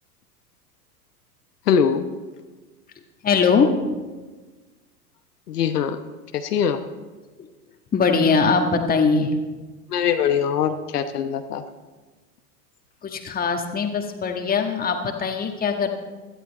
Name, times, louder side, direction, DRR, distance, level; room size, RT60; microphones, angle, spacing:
voice 1, 1.7-2.0 5.5-6.0 6.3-6.8 9.9-11.6, left 7 dB, 70° left, 7 dB, 1.1 m, -22 dB
voice 2, 3.2-3.7 7.4-7.5 7.9-9.3 13.0-15.9, left 5 dB, 20° left, 4 dB, 1.6 m, -21 dB
17.0 x 12.5 x 4.1 m, 1.3 s
hypercardioid pair, 95°, 48 cm